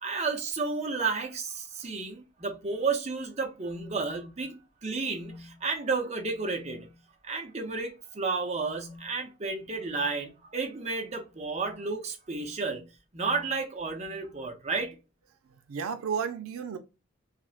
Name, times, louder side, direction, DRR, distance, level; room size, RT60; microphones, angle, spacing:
voice 1, 0.0-6.9 7.2-12.9 13.1-14.9, right 4 dB, 30° right, 0.5 m, -32 dB
voice 2, 15.5-16.8, right 6 dB, 90° right, 0.4 m, -33 dB
4.1 x 2.0 x 2.4 m
head